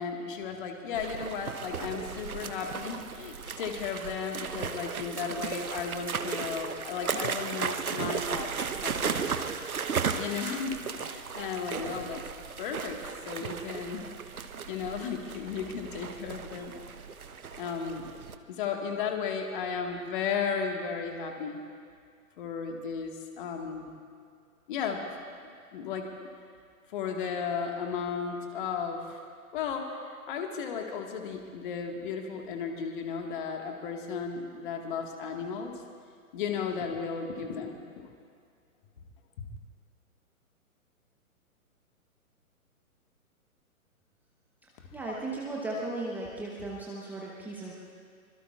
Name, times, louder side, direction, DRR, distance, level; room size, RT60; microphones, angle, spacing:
voice 1, 0.0-8.5 8.8-9.4 10.2-12.2 12.6-13.0 13.3-14.1 14.3-16.7 17.6-18.0 18.5-21.6 22.4-23.9 24.7-25.0 25.7-26.1 26.9-29.2 29.5-35.7 36.3-38.1 39.4-39.5, left 6 dB, 35° left, 3 dB, 1.8 m, -34 dB
sound 1, 0.9-18.3, right 6 dB, 70° right, 1.1 m, -35 dB
voice 2, 44.6-47.7, right 2 dB, 5° right, -4 dB, 1.0 m, -36 dB
24.5 x 22.0 x 2.5 m, 2.2 s
figure-of-eight pair, 125°, 44 cm